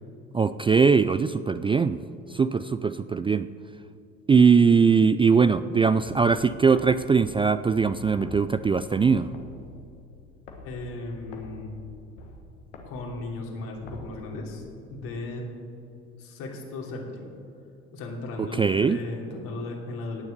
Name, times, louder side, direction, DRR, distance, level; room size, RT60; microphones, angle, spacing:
voice 1, 0.3-2.0 2.3-3.5 4.3-9.3 18.4-19.0, right 5 dB, 15° right, 12 dB, 0.3 m, -21 dB
sound 1, 5.9-15.0, left 3 dB, 90° left, 1.5 m, -46 dB
voice 2, 10.6-11.8 12.8-14.6 14.9-15.5 16.2-17.3 17.9-20.2, left 2 dB, 70° left, -1 dB, 3.1 m, -36 dB
17.5 x 7.0 x 6.7 m, 2.7 s
hypercardioid pair, 60°, 35 cm